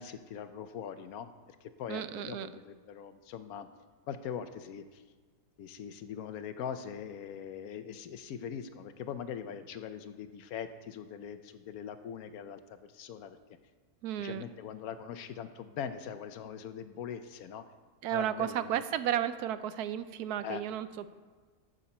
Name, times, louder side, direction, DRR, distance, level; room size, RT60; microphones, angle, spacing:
voice 1, 0.0-1.3 1.6-3.7 4.1-5.0 5.6-13.4 14.2-17.6 18.1-19.2 20.4-20.6, left 8 dB, 75° left, 11 dB, 1.1 m, -42 dB
voice 2, 1.9-2.5 14.0-14.5 18.0-21.2, right 10 dB, 80° right, 13 dB, 1.1 m, -33 dB
12.5 x 8.0 x 4.3 m, 1.5 s
omnidirectional pair, 1.6 m